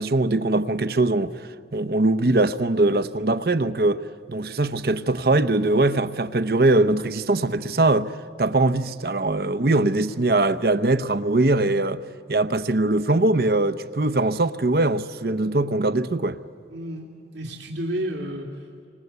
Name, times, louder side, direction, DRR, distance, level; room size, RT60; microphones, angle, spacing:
voice 1, 0.0-1.3 1.7-12.0 12.3-16.4, right 2 dB, 55° right, 0.8 m, -21 dB
voice 2, 16.7-17.1 17.3-18.9, equal, 85° right, 2.8 m, -31 dB
28.5 x 25.5 x 8.2 m
head